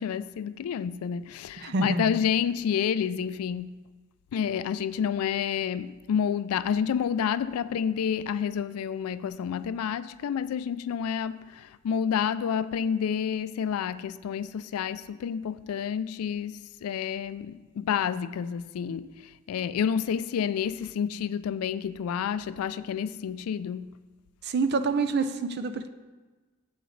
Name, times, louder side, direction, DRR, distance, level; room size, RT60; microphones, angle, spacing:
voice 1, 0.0-3.8 4.3-24.0, left 7 dB, 90° left, 0.3 m, -29 dB
voice 2, 1.6-2.1 24.4-25.9, right 3 dB, 50° right, 0.5 m, -27 dB
8.0 x 7.7 x 3.2 m
head